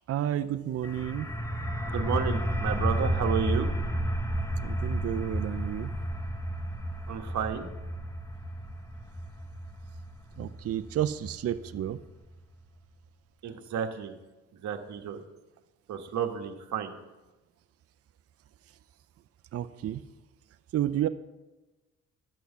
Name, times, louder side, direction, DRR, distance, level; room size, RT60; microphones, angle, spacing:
voice 1, 0.1-1.3 4.6-5.9 10.4-12.0 19.5-20.0 20.7-21.1, right 11 dB, 50° right, 11 dB, 0.6 m, -31 dB
sound 1, 0.8-12.3, equal, 10° left, 1.0 m, -32 dB
voice 2, 1.8-3.7 7.1-7.7 13.4-14.1 14.6-15.2 15.9-17.0, right 7 dB, 65° right, 4 dB, 1.3 m, -31 dB
11.5 x 6.3 x 7.0 m, 1.1 s
cardioid pair, 90°, 30 cm